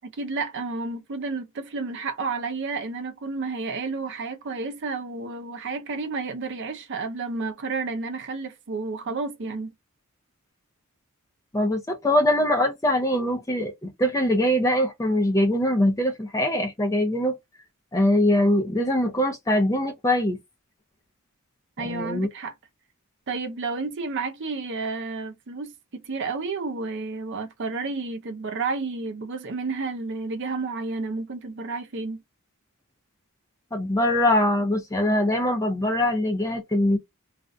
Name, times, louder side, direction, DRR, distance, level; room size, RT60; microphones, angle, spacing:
voice 1, 0.0-9.7 21.8-22.5 23.3-32.2, right 4 dB, 55° right, 0.6 m, -31 dB
voice 2, 11.5-17.3 17.9-20.4 21.8-22.3 33.7-37.0, left 1 dB, 15° left, 0.5 m, -22 dB
2.5 x 2.1 x 2.5 m
head